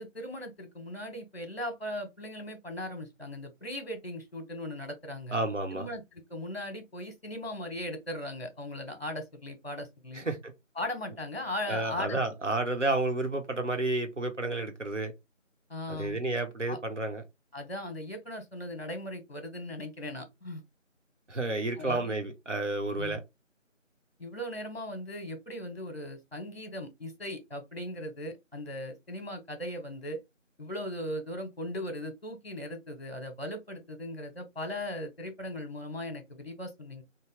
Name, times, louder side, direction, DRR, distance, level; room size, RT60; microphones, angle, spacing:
voice 1, 0.0-5.4 5.7-6.0 6.3-10.3 10.8-12.2 15.7-16.2 16.7-16.8 17.5-20.6 21.8-22.2 23.0-23.2 24.2-30.2 30.6-37.0, left 1 dB, 50° left, 1.0 m, -38 dB
voice 2, 5.3-5.9 10.1-10.5 11.7-15.1 15.9-17.2 21.3-23.2, right 2 dB, 65° right, 1.1 m, -31 dB
3.2 x 2.2 x 3.5 m
figure-of-eight pair, 175°, 39 cm